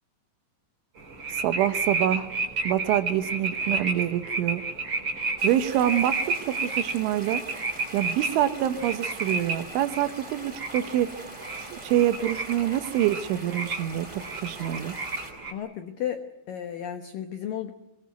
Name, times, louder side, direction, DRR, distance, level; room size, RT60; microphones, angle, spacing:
sound 1, 1.0-15.5, right 3 dB, 30° right, 4.3 m, -32 dB
voice 1, 1.3-2.3 2.6-4.6 5.4-7.4 7.9-11.1 11.6-15.0, right 12 dB, 75° right, 10 dB, 3.4 m, -26 dB
sound 2, 5.4-15.3, right 1 dB, 5° right, 4.2 m, -43 dB
voice 2, 15.5-17.7, left 10 dB, 85° left, 7 dB, 1.9 m, -33 dB
23.0 x 19.0 x 9.4 m, 0.96 s
omnidirectional pair, 5.8 m